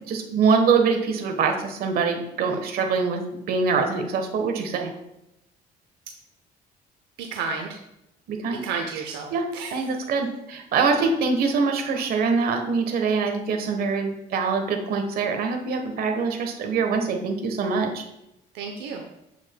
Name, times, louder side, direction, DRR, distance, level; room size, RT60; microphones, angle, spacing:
voice 1, 0.1-3.2 3.5-4.9 8.3-8.6 9.3-18.0, right 5 dB, 65° right, 4 dB, 1.2 m, -24 dB
voice 2, 7.2-7.8 8.5-9.3 9.5-9.8 10.9-11.1 18.5-19.0, right 5 dB, 90° right, 3 dB, 0.8 m, -32 dB
7.7 x 6.1 x 2.2 m, 0.84 s
cardioid pair, 110°, 17 cm